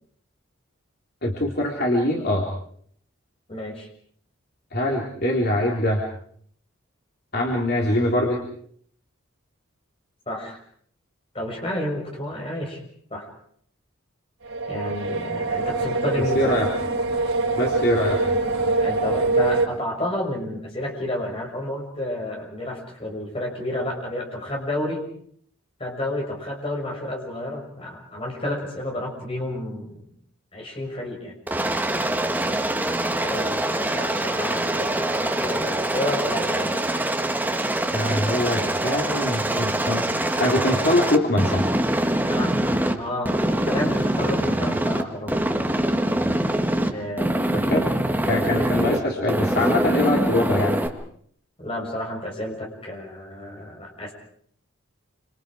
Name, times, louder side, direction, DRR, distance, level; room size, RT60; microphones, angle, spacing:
voice 1, 1.2-2.5 4.7-6.1 7.3-8.4 16.3-16.7 17.6-18.2 37.9-40.1 40.4-41.6 47.5-47.9 48.3-50.8, left 1 dB, 45° left, -1 dB, 3.6 m, -23 dB
voice 2, 3.5-3.9 10.3-10.6 11.3-12.8 13.1-13.3 14.7-16.6 18.8-25.0 25.8-30.0 30.5-31.3 33.2-36.7 42.3-45.4 46.9-47.9 51.6-54.1, left 1 dB, 25° left, 0 dB, 6.3 m, -31 dB
sound 1, 14.4-19.7, right 3 dB, 85° right, 4.9 m, -24 dB
Aircraft, 31.5-42.9 43.3-45.0 45.3-46.9 47.2-49.0 49.3-50.9, right 1 dB, 10° right, 1.8 m, -24 dB
27.5 x 27.0 x 4.9 m, 0.62 s
head